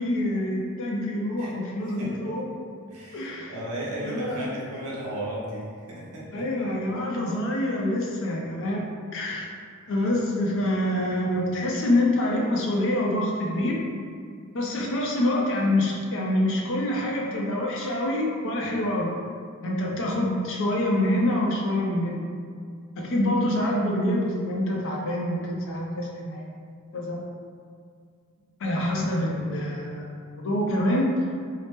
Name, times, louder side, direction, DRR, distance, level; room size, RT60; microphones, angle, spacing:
voice 1, 0.0-2.4 3.1-3.5 4.0-4.5 6.3-8.8 9.1-9.5 9.9-13.8 14.5-19.1 19.6-22.2 23.0-26.5 26.9-27.2 28.6-31.1, left 1 dB, 60° left, -2 dB, 0.5 m, -26 dB
voice 2, 2.9-6.3, right 1 dB, 80° right, -6 dB, 0.8 m, -35 dB
2.8 x 2.0 x 3.4 m, 2.2 s
head